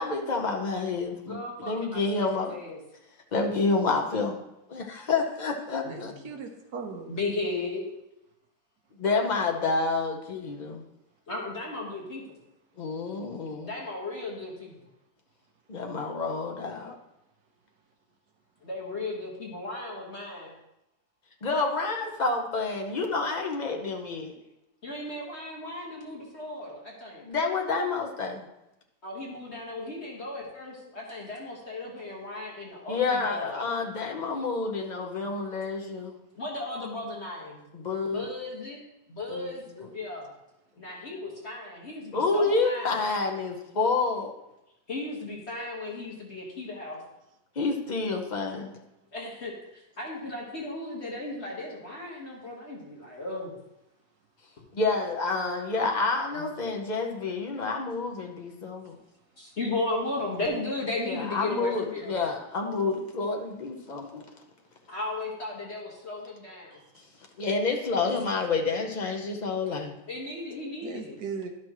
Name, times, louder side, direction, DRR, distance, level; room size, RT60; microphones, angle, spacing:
voice 1, 0.0-2.6 3.3-4.4 4.7-6.1 9.0-10.8 12.8-13.7 15.7-16.9 21.4-24.3 27.2-28.5 32.9-36.2 37.7-38.3 39.3-39.5 42.1-44.3 47.6-48.8 54.7-59.0 61.1-64.2 67.4-70.0, left 3 dB, 55° left, 2 dB, 0.4 m, -29 dB
voice 2, 1.2-2.8 5.8-6.2 7.0-7.8 11.3-12.2 13.6-14.7 18.6-20.5 24.8-27.2 29.0-33.6 36.3-37.6 38.1-38.8 39.1-40.3 40.8-43.0 44.9-47.0 49.1-53.5 56.3-56.4 59.4-62.1 64.9-66.8 70.1-71.2, left 2 dB, 40° left, -3 dB, 1.6 m, -35 dB
voice 3, 5.9-7.1 70.8-71.5, right 5 dB, 65° right, 3 dB, 1.5 m, -38 dB
11.5 x 6.0 x 3.0 m, 0.89 s
omnidirectional pair, 2.0 m